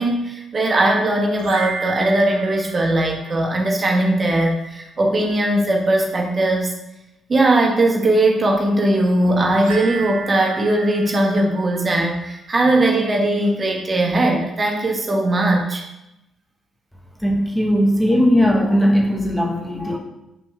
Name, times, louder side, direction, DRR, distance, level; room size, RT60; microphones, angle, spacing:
voice 1, 0.0-6.7 7.3-15.8, right 1 dB, 35° right, 0 dB, 1.2 m, -19 dB
sound 1, 1.3-3.8 9.6-12.2, right 4 dB, 75° right, 1.0 m, -33 dB
voice 2, 17.2-20.0, equal, 5° left, 0 dB, 0.9 m, -18 dB
6.8 x 5.9 x 2.3 m, 0.91 s
figure-of-eight pair, 40°, 0 cm